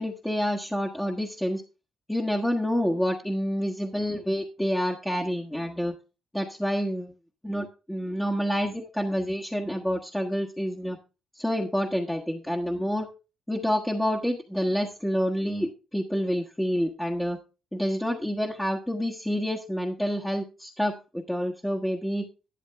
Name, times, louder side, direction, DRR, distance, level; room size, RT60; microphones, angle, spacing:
voice 1, 0.0-1.6 2.1-5.9 6.3-7.1 7.4-11.0 11.3-13.1 13.5-17.4 17.7-22.3, equal, 5° left, -1 dB, 1.4 m, -28 dB
12.0 x 11.0 x 3.4 m, 0.31 s
cardioid pair, 90°, 0 cm